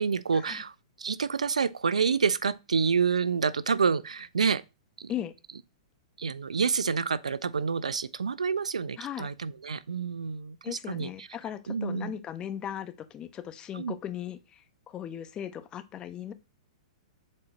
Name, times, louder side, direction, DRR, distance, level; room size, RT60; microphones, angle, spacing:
voice 1, 0.0-4.6 5.0-5.1 6.2-11.3 11.7-12.1 13.7-13.9, right 5 dB, 90° right, 0.6 m, -28 dB
voice 2, 9.0-9.3 10.6-16.3, left 10 dB, 25° left, 1.1 m, -38 dB
7.6 x 4.3 x 6.4 m
hypercardioid pair, 120°, 3 cm